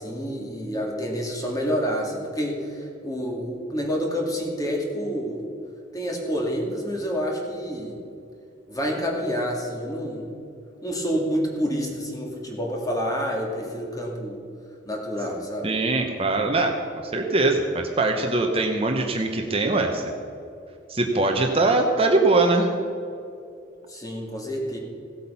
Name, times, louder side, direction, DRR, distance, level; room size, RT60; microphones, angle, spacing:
voice 1, 0.0-5.4 5.9-8.0 8.7-10.3 10.8-14.4 14.9-15.7 23.9-24.8, equal, 20° left, 0 dB, 2.2 m, -28 dB
voice 2, 15.6-16.8 17.0-20.1 20.9-22.7, right 2 dB, 30° right, 3 dB, 0.9 m, -22 dB
16.0 x 8.3 x 5.7 m, 2.6 s
head